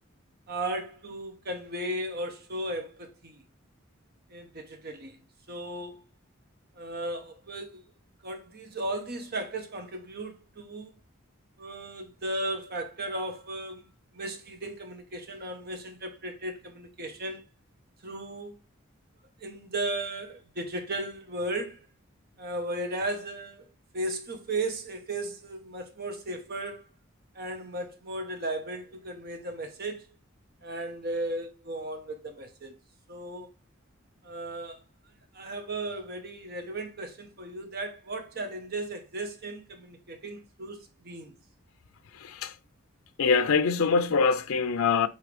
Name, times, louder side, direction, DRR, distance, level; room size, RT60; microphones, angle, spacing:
voice 1, 0.5-3.4 4.3-5.2 5.5-6.0 6.7-7.8 8.2-10.9 11.6-13.8 14.1-17.4 18.0-18.6 19.4-21.9 22.4-23.7 23.9-26.9 27.3-30.1 30.6-32.7 33.1-33.5 34.2-34.8 35.3-41.3, right 1 dB, 50° right, 1.2 m, -35 dB
voice 2, 42.2-42.5 43.2-45.1, left 5 dB, 80° left, 0.5 m, -24 dB
8.4 x 3.3 x 3.4 m
head